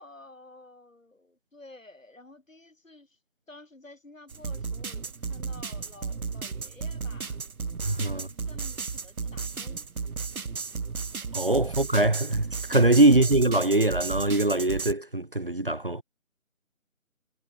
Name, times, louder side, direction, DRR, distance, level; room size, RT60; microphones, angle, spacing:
voice 1, 0.0-3.2 3.5-7.4 8.1-9.8 11.6-11.8 13.1-13.3, left 2 dB, 65° left, 6.9 m, -51 dB
sound 1, 4.3-14.9, right 5 dB, 80° right, 0.9 m, -34 dB
voice 2, 7.8-8.3 11.3-16.0, right 2 dB, 40° right, 0.8 m, -22 dB
figure-of-eight pair, 160°, 42 cm